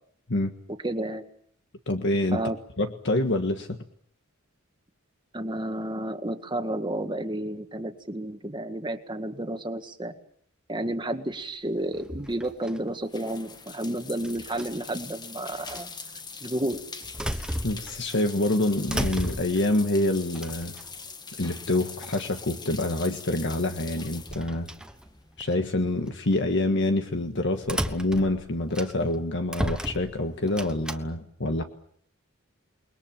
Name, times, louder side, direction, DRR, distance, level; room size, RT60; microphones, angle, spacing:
voice 1, 0.7-1.2 2.3-2.6 5.3-10.1 10.7-15.9 16.4-16.8, right 1 dB, 20° right, 6 dB, 1.8 m, -31 dB
voice 2, 1.9-2.4 2.8-3.8 17.6-20.7 21.4-24.7 25.4-31.6, left 1 dB, 60° left, 6 dB, 1.7 m, -26 dB
sound 1, 11.9-12.9 14.2-14.9 15.7-15.8 16.7-18.2 18.5-19.7 20.3-21.1 21.7-21.8 22.0-22.4 24.0-25.5 26.1-26.3 27.6-29.2 29.5-31.0, equal, 5° right, 1.2 m, -34 dB
sound 2, 12.3-25.5, left 5 dB, 20° left, 1.4 m, -43 dB
29.0 x 21.5 x 7.5 m, 0.65 s
head